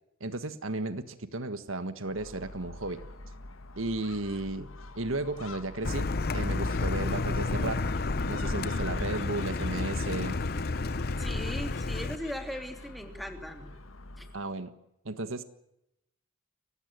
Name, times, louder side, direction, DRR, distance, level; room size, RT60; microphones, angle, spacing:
voice 1, 0.2-3.0 3.8-4.7 4.9-6.1 6.3-7.8 8.2-10.4 14.3-14.7 15.0-15.4, right 2 dB, 75° right, 11 dB, 1.6 m, -34 dB
Gull seagull, 2.0-14.5, left 2 dB, 80° left, 1.6 m, -46 dB
Car, 5.8-12.2, left 3 dB, 50° left, 0.8 m, -30 dB
voice 2, 11.2-13.7 14.2-14.3, equal, ahead, 4 dB, 3.0 m, -38 dB
28.5 x 16.0 x 8.1 m, 0.85 s
head